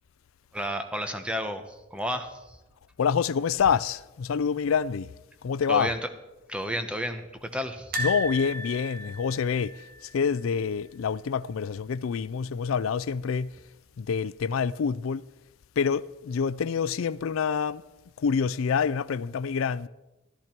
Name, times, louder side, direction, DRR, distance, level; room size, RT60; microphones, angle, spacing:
voice 1, 0.5-1.6 1.9-2.3 5.7-6.1 6.5-8.0, equal, 5° right, 0.9 m, -31 dB
voice 2, 3.0-5.1 5.4-5.9 8.0-9.8 10.1-13.5 14.0-15.2 15.8-17.8 18.2-19.9, left 6 dB, 90° left, 0.4 m, -27 dB
sound 1, 7.9-11.0 11.2-11.4 11.7-11.8 13.0-13.6 14.1-14.2, equal, 45° right, 1.9 m, -35 dB
14.0 x 13.5 x 4.5 m
head